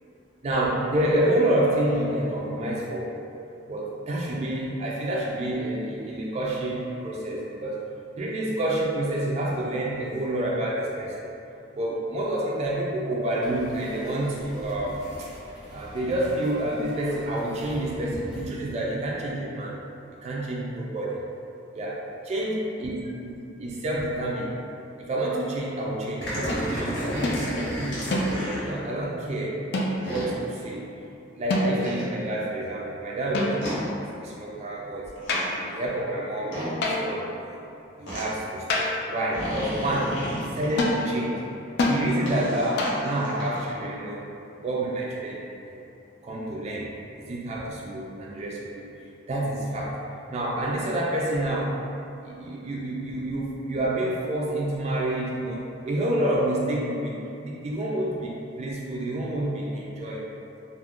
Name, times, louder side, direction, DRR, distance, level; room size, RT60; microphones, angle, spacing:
voice 1, 0.4-3.1 3.7-7.8 8.2-11.3 11.7-15.3 15.7-19.7 20.2-21.2 21.7-22.0 22.2-22.9 23.2-24.6 25.0-28.0 28.6-29.6 30.1-30.9 31.4-35.1 35.5-37.6 38.0-41.4 41.9-44.2 44.6-45.8 46.2-46.9 47.2-48.8 49.3-50.0 50.3-51.8 52.2-60.2, right 1 dB, 35° right, -4 dB, 0.3 m, -28 dB
sound 1, 13.4-18.5, equal, 5° right, 0.7 m, -43 dB
sound 2, 26.2-28.7 30.0-30.3 31.8-32.0 33.6-33.8 35.0-35.5 36.5-36.7 38.1-38.2 39.3-41.0 42.2-43.8, equal, 80° left, 0.9 m, -33 dB
sound 3, 26.5-26.7 27.2-27.5 28.1-28.6 29.7-30.2 31.5-32.0 33.3-33.9 35.3-35.6 36.8-37.2 38.7-39.1 40.8-41.1 41.8-42.1 42.8-43.1, left 1 dB, 60° left, 0.3 m, -26 dB
2.4 x 2.1 x 3.5 m, 2.8 s
head